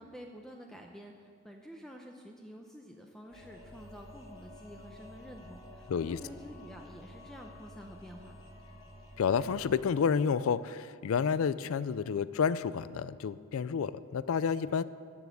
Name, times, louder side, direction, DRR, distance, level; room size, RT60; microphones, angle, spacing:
voice 1, 0.0-8.4, equal, ahead, 1 dB, 0.7 m, -49 dB
sound 1, 3.3-9.8, left 1 dB, 25° left, 2.3 m, -51 dB
voice 2, 5.9-6.2 9.2-14.8, left 6 dB, 70° left, 17 dB, 0.4 m, -30 dB
13.0 x 7.1 x 8.0 m, 2.3 s
head